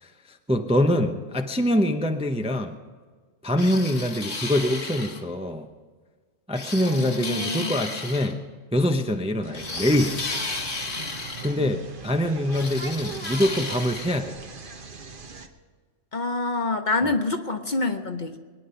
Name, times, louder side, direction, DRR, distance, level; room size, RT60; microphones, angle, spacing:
voice 1, 0.0-2.7 3.4-5.7 6.5-8.4 8.7-10.2 11.4-14.4 17.0-17.1, left 1 dB, 5° right, 5 dB, 0.6 m, -24 dB
sound 1, 3.6-5.2 6.5-8.3 9.5-11.6 12.5-14.2, left 3 dB, 55° left, 1.9 m, -33 dB
voice 2, 6.9-7.8 11.6-11.7 16.1-18.4, left 3 dB, 40° left, 6 dB, 0.9 m, -27 dB
sound 2, 9.4-15.5, right 4 dB, 45° right, 1.2 m, -40 dB
23.0 x 10.0 x 5.7 m, 1.5 s
omnidirectional pair, 1.3 m